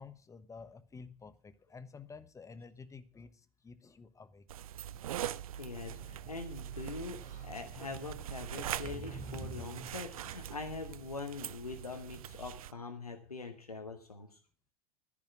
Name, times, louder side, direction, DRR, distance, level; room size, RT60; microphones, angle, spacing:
voice 1, 0.0-4.5, left 4 dB, 15° left, 1.1 m, -51 dB
sound 1, 4.5-12.7, right 11 dB, 70° right, 0.5 m, -43 dB
voice 2, 5.3-14.4, left 4 dB, 85° left, 1.4 m, -43 dB
Sliding door, 5.7-10.4, right 3 dB, 40° right, 4.8 m, -48 dB
12.5 x 10.5 x 6.0 m
figure-of-eight pair, 80°, 19 cm